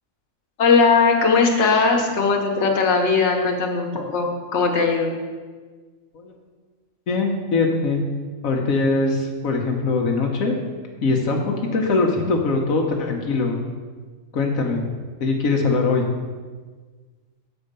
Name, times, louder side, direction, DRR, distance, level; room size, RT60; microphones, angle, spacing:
voice 1, 0.6-5.1, left 4 dB, 60° left, 1 dB, 1.3 m, -19 dB
voice 2, 7.1-8.0 8.4-10.6 11.0-13.6 14.3-14.8 15.2-16.1, left 3 dB, 80° left, 1 dB, 1.3 m, -22 dB
8.0 x 4.5 x 6.6 m, 1.4 s
omnidirectional pair, 1.4 m